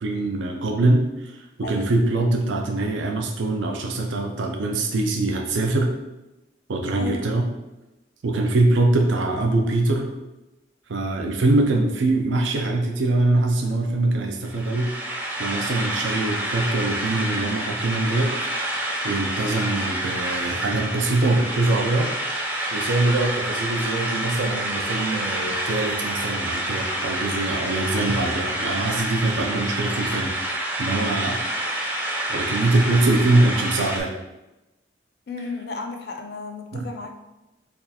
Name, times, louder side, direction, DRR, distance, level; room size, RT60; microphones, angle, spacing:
voice 1, 0.0-5.9 6.7-7.5 8.2-10.1 10.9-14.9 15.4-18.3 19.0-22.1 22.7-30.3 30.8-31.4 32.3-34.1 36.7-36.8, right 2 dB, 75° right, 2 dB, 0.5 m, -23 dB
voice 2, 1.6-2.0 7.0-7.2 19.1-19.2 31.1-31.2 35.3-37.1, left 3 dB, 55° left, 5 dB, 0.4 m, -33 dB
sound 1, 14.4-34.0, right 1 dB, 10° right, 0.4 m, -28 dB
3.4 x 2.4 x 4.1 m, 0.98 s
head